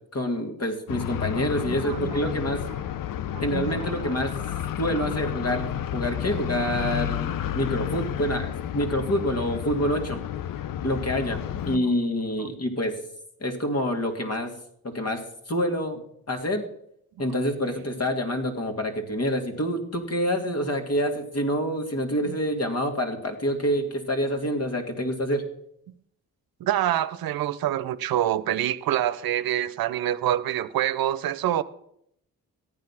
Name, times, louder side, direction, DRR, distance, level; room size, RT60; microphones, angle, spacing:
voice 1, 0.1-2.6 3.4-4.3 4.8-10.2 10.8-11.4 11.6-13.0 13.4-14.5 14.8-16.6 17.2-25.4, equal, 40° left, 2.8 m, -27 dB
sound 1, 0.9-11.8, left 10 dB, 65° left, 0.7 m, -31 dB
voice 2, 1.7-2.2 3.3-4.1 5.0-5.1 11.7-11.8 12.4-12.5 22.3-22.4 26.6-31.6, right 12 dB, 75° right, 0.7 m, -27 dB
14.0 x 9.5 x 6.0 m
supercardioid pair, 50°, 36 cm